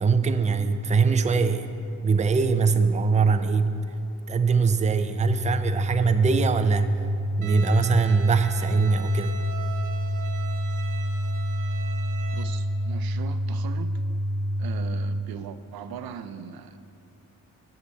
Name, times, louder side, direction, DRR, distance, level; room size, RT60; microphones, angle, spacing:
voice 1, 0.0-1.7 2.0-3.8 4.3-7.0 7.4-9.4, right 5 dB, 20° right, 9 dB, 0.5 m, -22 dB
sound 1, 5.2-15.2, equal, 70° left, 0.7 m, -28 dB
Bowed string instrument, 7.4-12.4, right 5 dB, 60° right, 0.9 m, -40 dB
voice 2, 12.3-13.9 14.6-16.8, right 8 dB, 90° right, 11 dB, 0.6 m, -39 dB
8.4 x 6.7 x 8.1 m, 2.9 s
cardioid pair, 105°, 35 cm